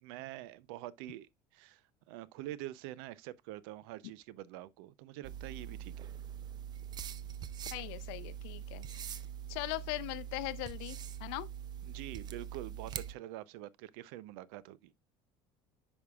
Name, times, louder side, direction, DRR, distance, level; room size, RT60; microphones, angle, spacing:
voice 1, 0.0-6.1 11.8-14.9, right 15 dB, 85° right, 0.5 m, -46 dB
sound 1, 5.2-13.1, right 9 dB, 35° right, 0.5 m, -43 dB
voice 2, 7.7-8.8 9.5-11.5, left 19 dB, 85° left, 0.6 m, -40 dB
9.6 x 5.3 x 2.3 m
cardioid pair, 135°, 13 cm